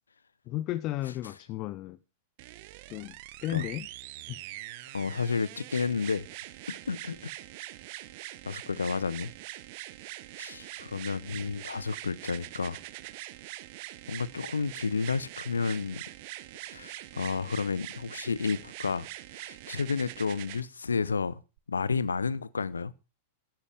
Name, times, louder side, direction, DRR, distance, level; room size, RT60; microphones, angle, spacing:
voice 1, 0.5-2.0 2.9-3.9 4.3-4.4, left 15 dB, 40° left, 0.6 m, -34 dB
sound 1, 2.4-20.6 21.6-21.7, right 17 dB, 50° right, 0.9 m, -43 dB
voice 2, 4.9-6.3 6.7-7.3 8.4-9.3 10.4-12.8 14.1-16.0 16.7-19.1 19.3-21.4 21.7-22.9, left 5 dB, 75° left, 0.7 m, -31 dB
12.5 x 10.5 x 5.0 m
figure-of-eight pair, 90°, 0 cm